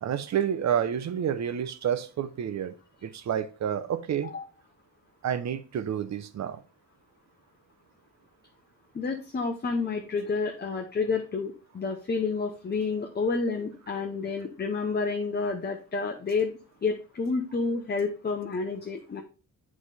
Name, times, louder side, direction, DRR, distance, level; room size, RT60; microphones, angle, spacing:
voice 1, 0.0-2.7 3.0-4.3 5.2-6.6, right 9 dB, 55° right, 0.8 m, -29 dB
voice 2, 8.9-16.5 16.8-19.2, left 4 dB, 30° left, 0.9 m, -29 dB
8.1 x 4.9 x 4.1 m
cardioid pair, 125°, 34 cm